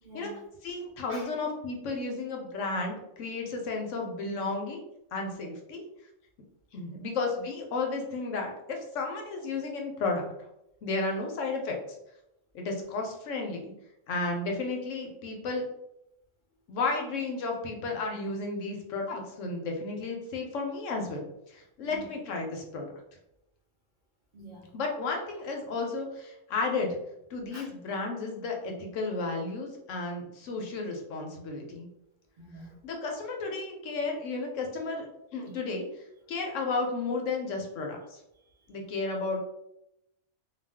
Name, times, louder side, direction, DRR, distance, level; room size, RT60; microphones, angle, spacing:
voice 1, 0.0-0.4 1.1-1.3 21.8-22.1 24.3-24.7 27.5-27.7 32.4-32.7 38.3-38.7, right 1 dB, 50° right, -6 dB, 0.8 m, -47 dB
voice 2, 0.6-5.8 6.7-10.3 10.8-11.8 12.5-13.7 14.1-15.6 16.7-21.2 21.5-22.9 24.7-27.0 27.3-31.9 32.8-35.1 35.3-35.8 36.3-38.2 38.7-39.4, left 3 dB, 70° left, 2 dB, 0.9 m, -33 dB
2.4 x 2.3 x 3.3 m, 0.84 s
omnidirectional pair, 1.4 m